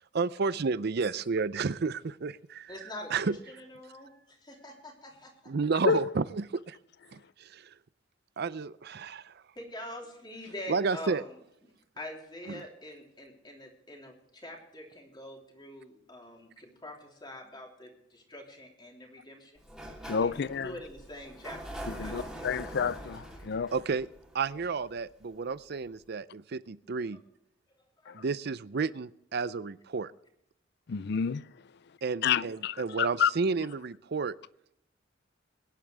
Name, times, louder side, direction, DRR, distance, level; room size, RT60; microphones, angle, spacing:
voice 1, 0.1-3.3 5.5-6.8 7.1-7.7 8.4-9.3 10.7-11.2 12.5-12.6 23.7-24.1 24.3-27.2 28.1-30.1 32.0-34.4, right 4 dB, 55° right, 0.5 m, -31 dB
voice 2, 2.7-5.5 9.5-11.2 12.0-19.6 20.2-22.7 28.0-28.1, left 1 dB, 25° left, 3.4 m, -45 dB
Sliding door, 19.6-25.2, right 1 dB, ahead, 3.3 m, -44 dB
voice 3, 20.0-20.7 21.9-23.7 28.1-28.2 30.9-31.5 32.2-33.3, left 7 dB, 60° left, 0.5 m, -29 dB
22.0 x 11.0 x 3.4 m
head